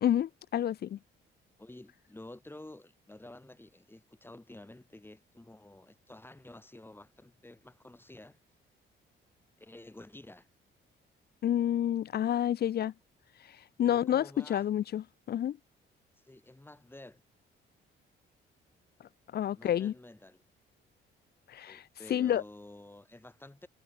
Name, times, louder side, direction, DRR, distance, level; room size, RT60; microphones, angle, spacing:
voice 1, 0.0-1.0 11.4-12.9 13.8-15.6 19.3-19.9 21.5-21.8 22.1-22.4, left 10 dB, 55° left, 0.6 m, -29 dB
voice 2, 1.6-8.4 9.6-10.5 13.8-14.7 16.2-17.2 19.5-20.4 21.7-23.7, left 1 dB, 10° left, 6.4 m, -51 dB
cardioid pair, 90°, 20 cm